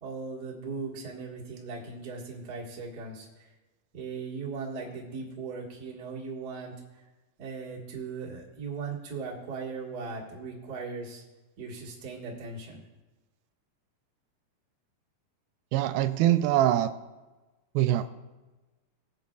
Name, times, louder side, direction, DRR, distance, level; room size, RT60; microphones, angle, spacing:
voice 1, 0.0-3.5 3.9-6.7 7.4-11.2 11.6-12.8, right 4 dB, 40° right, -3 dB, 1.4 m, -38 dB
voice 2, 15.7-16.9 17.8-18.1, right 13 dB, 85° right, 11 dB, 2.4 m, -23 dB
21.0 x 7.8 x 2.4 m, 1.2 s
omnidirectional pair, 4.2 m